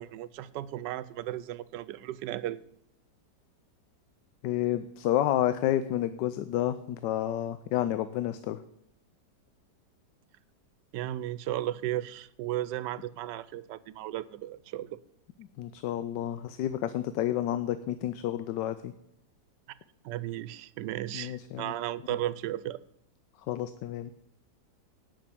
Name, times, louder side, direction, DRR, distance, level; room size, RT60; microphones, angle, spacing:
voice 1, 0.0-2.6 10.9-15.0 20.0-22.8, right 13 dB, 85° right, 17 dB, 1.2 m, -35 dB
voice 2, 4.4-8.6 15.6-18.9 21.1-21.6 23.5-24.1, left 12 dB, 90° left, 12 dB, 1.3 m, -30 dB
10.0 x 6.0 x 8.4 m, 0.76 s
omnidirectional pair, 1.8 m